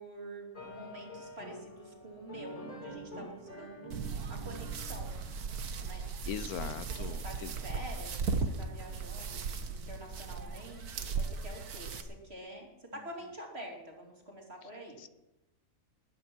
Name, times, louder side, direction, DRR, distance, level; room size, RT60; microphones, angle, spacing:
voice 1, 0.0-3.9 4.3-5.2 5.8-6.0 6.9-15.0, right 1 dB, 40° right, 0 dB, 3.2 m, -47 dB
sound 1, 0.5-5.8, equal, 25° left, 5.0 m, -47 dB
sound 2, 3.9-12.0, right 5 dB, 80° right, 1.7 m, -37 dB
voice 2, 6.3-7.5 15.0-15.1, left 9 dB, 75° left, 13 dB, 1.2 m, -40 dB
20.0 x 9.6 x 6.2 m, 1.0 s
omnidirectional pair, 1.6 m